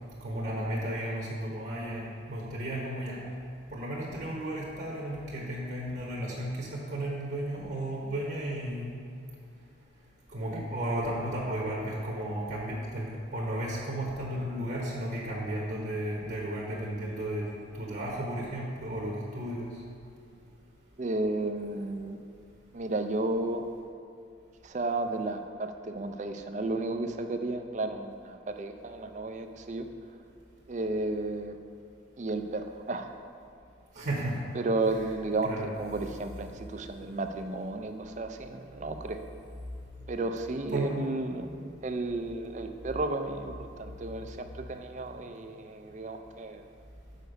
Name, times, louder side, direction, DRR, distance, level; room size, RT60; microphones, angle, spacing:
voice 1, 0.2-3.2 3.7-8.9 10.3-17.5 17.7-19.7 33.9-34.4 35.4-35.6 40.7-41.0, right 1 dB, 55° right, -4 dB, 1.0 m, -34 dB
voice 2, 21.0-22.2 22.7-23.6 24.6-29.9 30.7-31.6 32.2-33.1 34.5-39.2 40.1-46.7, right 2 dB, 40° right, 6 dB, 0.4 m, -33 dB
6.7 x 5.2 x 5.2 m, 2.4 s
head